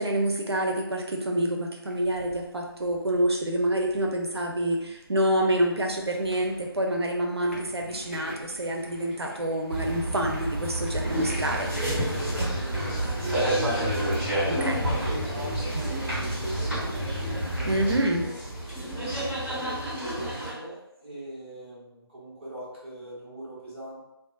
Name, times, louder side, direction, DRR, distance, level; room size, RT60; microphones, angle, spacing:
voice 1, 0.0-11.7 14.5-14.8 17.7-18.2, right 1 dB, 90° right, 1 dB, 0.5 m, -27 dB
sound 1, 1.8-19.5, left 1 dB, 30° left, 0.5 m, -47 dB
sound 2, 9.7-18.0, right 1 dB, 60° right, 1.1 m, -31 dB
sound 3, 11.0-20.5, equal, ahead, 1.5 m, -31 dB
voice 2, 12.1-18.4 18.9-24.0, right 1 dB, 25° right, -8 dB, 0.9 m, -41 dB
2.6 x 2.1 x 2.6 m, 0.89 s
figure-of-eight pair, 160°, 13 cm